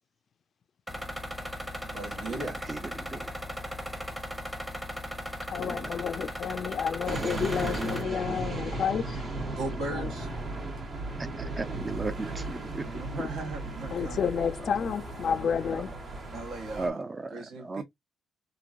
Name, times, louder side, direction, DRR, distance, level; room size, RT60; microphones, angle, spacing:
sound 1, 0.9-8.0, equal, 5° right, 0.8 m, -37 dB
voice 1, 1.9-2.5 9.5-10.3 12.8-14.3 16.3-17.0 17.3-17.8, right 2 dB, 80° right, 1.2 m, -37 dB
voice 2, 2.4-3.3 5.6-5.9 11.2-12.9 16.8-17.8, right 3 dB, 25° right, 0.4 m, -36 dB
voice 3, 5.5-9.3 9.9-10.1 13.9-16.1, left 7 dB, 55° left, 0.3 m, -30 dB
sound 2, 7.1-16.9, right 2 dB, 55° right, 1.1 m, -36 dB
3.0 x 2.5 x 2.5 m
cardioid pair, 90°, 0 cm